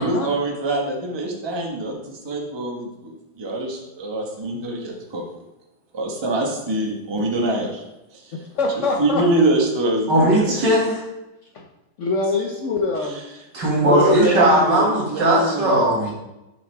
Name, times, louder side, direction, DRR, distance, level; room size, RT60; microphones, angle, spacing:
voice 1, 0.0-5.2 5.9-7.8 8.1-8.4 9.0-10.6 13.0-13.2 13.8-15.8, right 1 dB, 20° right, 0.8 m, -24 dB
voice 2, 8.3-9.2 11.5-11.6 12.0-13.2, left 3 dB, 60° left, 0.8 m, -24 dB
voice 3, 10.1-11.0 13.5-16.1, right 1 dB, 85° right, 2.9 m, -18 dB
6.6 x 5.3 x 3.3 m
omnidirectional pair, 1.9 m